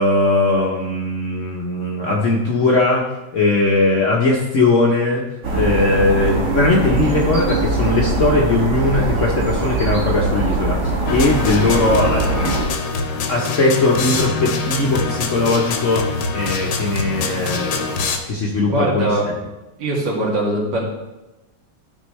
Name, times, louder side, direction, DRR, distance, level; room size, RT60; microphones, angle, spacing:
voice 1, 0.0-3.0 3.3-5.2 5.5-12.5 13.3-19.1, left 2 dB, 50° left, -2 dB, 1.0 m, -19 dB
sound 1, 5.4-12.7, right 3 dB, 40° right, 1.7 m, -21 dB
sound 2, 11.1-18.2, left 4 dB, 65° left, 1.4 m, -24 dB
voice 2, 18.6-19.3 19.8-20.8, right 2 dB, 60° right, -4 dB, 2.6 m, -21 dB
12.5 x 5.3 x 3.2 m, 1.0 s
omnidirectional pair, 2.2 m